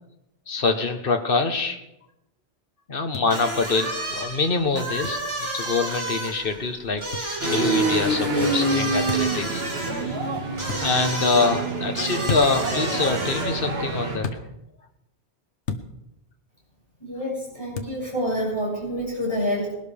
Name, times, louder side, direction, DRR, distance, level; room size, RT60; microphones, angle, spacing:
voice 1, 0.5-1.8 2.9-7.0 7.4-10.2 10.6-14.4, left 4 dB, 55° left, 7 dB, 1.3 m, -25 dB
sound 1, 3.1-3.3 5.0-5.2 7.1-7.3 9.1-9.4 10.6-10.8 12.2-12.7 14.2-14.4 15.6-15.9 17.7-18.0, left 5 dB, 85° left, 1.3 m, -31 dB
sound 2, 3.3-13.7, right 2 dB, 25° right, 2.8 m, -32 dB
sound 3, 7.4-14.2, right 2 dB, 60° right, 2.0 m, -26 dB
voice 2, 17.0-19.7, equal, 25° left, -6 dB, 6.8 m, -27 dB
20.0 x 12.0 x 3.5 m, 0.87 s
omnidirectional pair, 1.1 m